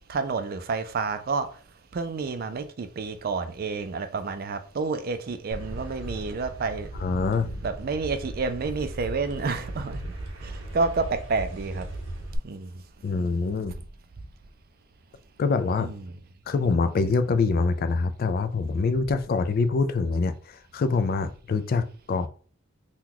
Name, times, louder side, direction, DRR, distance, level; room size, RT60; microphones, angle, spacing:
voice 1, 0.1-1.6 1.9-6.9 7.6-10.1 10.4-11.9 12.4-12.8 15.8-16.1, right 4 dB, 45° right, 0.4 m, -29 dB
sound 1, 5.5-12.4, right 1 dB, 85° right, 0.8 m, -37 dB
voice 2, 7.0-7.6 13.0-13.8 15.4-15.9 16.5-22.3, left 4 dB, 45° left, 0.3 m, -25 dB
2.9 x 2.3 x 3.7 m
head